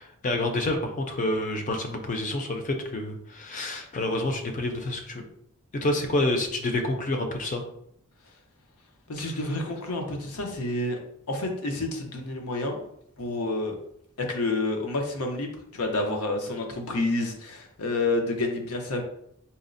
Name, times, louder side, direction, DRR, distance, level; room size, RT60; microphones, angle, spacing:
voice 1, 0.0-5.2 5.8-7.6 9.2-9.4, left 2 dB, 35° left, 4 dB, 0.4 m, -28 dB
voice 2, 9.1-11.0 11.3-12.8 13.2-13.8 14.2-19.0, left 2 dB, 90° left, 3 dB, 0.7 m, -29 dB
4.1 x 2.0 x 2.5 m, 0.71 s
head